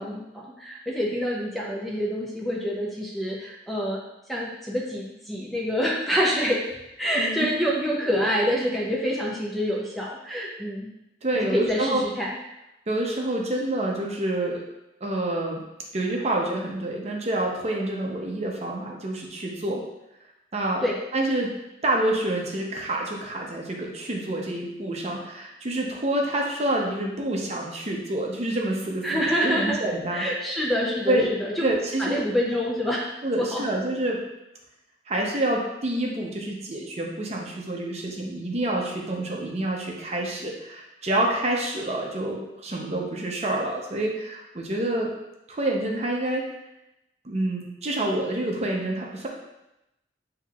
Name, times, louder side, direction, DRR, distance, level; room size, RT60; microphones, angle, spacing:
voice 1, 0.0-4.0 4.3-6.6 7.0-10.9 11.3-12.3 20.8-20.9 29.0-29.8 30.1-31.7 32.0-33.0 33.4-33.6, equal, ahead, -4 dB, 0.6 m, -27 dB
voice 2, 7.1-7.5 8.1-8.3 11.2-12.0 12.9-14.6 15.0-15.6 15.9-19.8 20.5-20.8 21.1-21.5 21.8-30.3 31.1-31.3 31.6-32.2 33.2-34.2 35.1-45.1 45.5-46.5 47.2-49.3, right 1 dB, 40° right, -1 dB, 0.7 m, -27 dB
7.4 x 2.8 x 2.4 m, 0.90 s
head